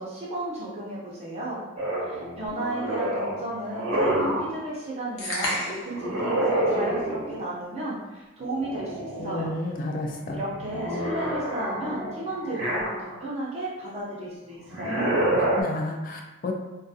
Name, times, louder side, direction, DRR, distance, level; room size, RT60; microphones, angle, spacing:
voice 1, 0.0-1.6 2.0-9.5 10.3-15.2, right 1 dB, 30° right, -6 dB, 0.5 m, -33 dB
sound 1, 1.8-4.6 5.9-7.5 8.4-9.4 9.8-13.3 14.6-15.6, right 1 dB, 90° right, 0.7 m, -28 dB
sound 2, 5.2-6.0, left 1 dB, 90° left, 0.7 m, -30 dB
voice 2, 9.2-10.4 15.4-16.5, left 2 dB, 40° left, 2 dB, 0.3 m, -31 dB
2.4 x 2.3 x 2.6 m, 1.1 s
head